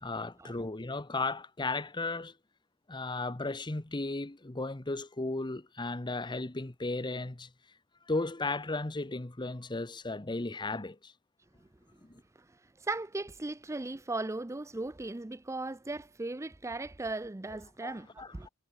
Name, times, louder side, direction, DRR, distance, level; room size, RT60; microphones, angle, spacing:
voice 1, 0.0-2.3 2.9-7.5 8.1-11.1 12.0-12.2 17.5-18.5, left 2 dB, 20° left, 0.9 m, -35 dB
voice 2, 12.8-18.5, right 2 dB, 15° right, 0.5 m, -37 dB
head